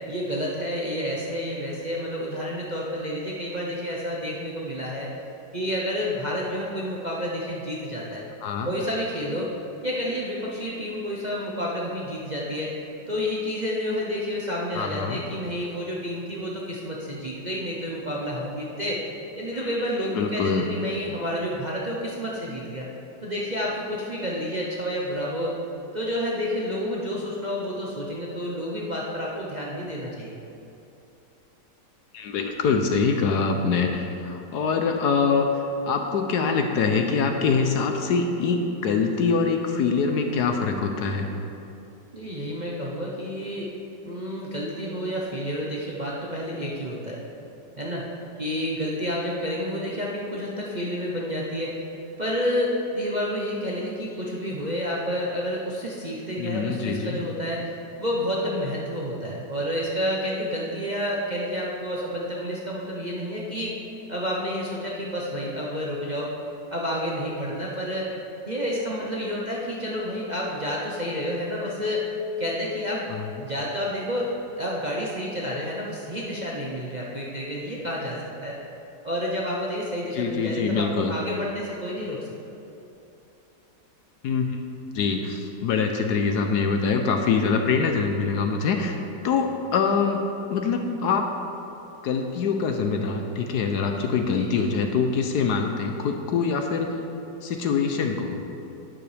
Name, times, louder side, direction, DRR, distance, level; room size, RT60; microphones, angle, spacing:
voice 1, 0.1-5.1 5.5-8.2 8.6-9.5 9.8-12.7 13.1-19.0 19.3-22.9 23.2-25.5 25.9-30.4 42.1-43.7 44.1-47.2 47.8-48.0 48.4-51.8 52.2-57.7 58.0-63.8 64.1-66.3 66.7-68.1 68.5-72.1 72.4-73.0 73.4-78.6 79.0-82.3 94.2-94.6, equal, 35° right, -4 dB, 0.7 m, -29 dB
voice 2, 8.4-8.7 14.7-15.2 19.5-20.7 32.1-35.5 35.9-41.3 56.4-57.2 73.1-73.3 80.1-81.1 84.2-84.6 84.9-89.0 89.2-90.2 90.5-91.3 92.0-97.0 97.4-98.4, left 5 dB, 70° left, 4 dB, 1.2 m, -24 dB
11.0 x 9.8 x 3.4 m, 2.8 s
omnidirectional pair, 2.0 m